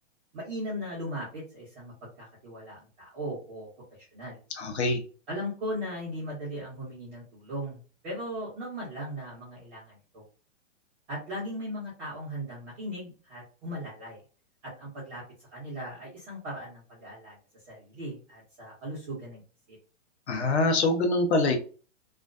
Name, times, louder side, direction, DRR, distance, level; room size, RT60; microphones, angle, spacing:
voice 1, 0.3-3.7 4.1-4.4 5.3-10.2 11.1-14.2 14.6-15.2 15.5-17.3 17.7-19.4 19.7-19.8, equal, 10° right, -6 dB, 0.5 m, -38 dB
voice 2, 4.5-5.0 20.3-21.6, left 2 dB, 60° left, 4 dB, 0.7 m, -24 dB
2.4 x 2.2 x 2.3 m, 0.37 s
hypercardioid pair, 170°, 38 cm